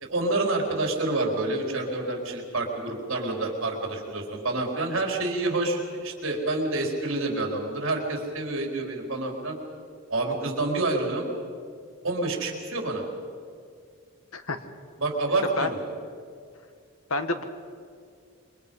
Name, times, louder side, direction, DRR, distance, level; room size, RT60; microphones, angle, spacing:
voice 1, 0.0-9.6 10.1-11.3 12.0-13.0 15.0-15.8, right 2 dB, 65° right, 1 dB, 4.1 m, -28 dB
voice 2, 17.1-17.4, left 3 dB, 90° left, 8 dB, 1.6 m, -28 dB
27.0 x 24.0 x 5.5 m, 2.2 s
head